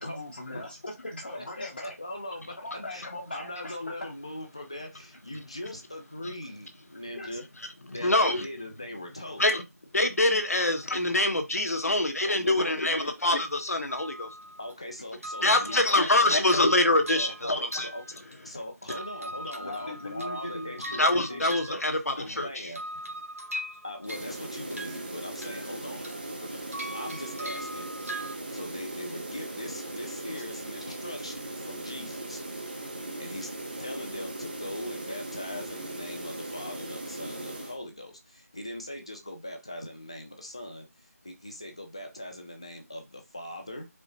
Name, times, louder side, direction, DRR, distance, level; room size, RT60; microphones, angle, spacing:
voice 1, 0.0-1.9 2.6-3.8 7.2-7.3 10.6-10.7 11.8-12.0 12.4-12.5 19.6-21.4 30.3-30.4, left 1 dB, 40° left, 0.9 m, -40 dB
voice 2, 1.3-2.5 2.9-3.0 3.3-7.4 7.9-9.5 12.3-13.1 14.6-16.4 17.1-18.0 18.4-22.8 23.8-26.1 26.4-26.6 26.9-27.9 28.5-32.4 33.2-33.5 33.8-43.9, left 1 dB, 20° left, 0.5 m, -40 dB
voice 3, 7.9-8.5 9.4-9.6 9.9-14.3 15.4-17.9 18.9-19.0 21.0-22.5, left 2 dB, 65° left, 1.0 m, -25 dB
sound 1, 13.9-14.8 15.2-18.6 18.9-22.3 22.7-24.4 24.7-25.7 26.0-28.3, right 1 dB, 60° right, 1.6 m, -40 dB
sound 2, 24.0-37.8, right 2 dB, 30° right, 0.7 m, -38 dB
4.9 x 2.1 x 3.9 m
figure-of-eight pair, 175°, 9 cm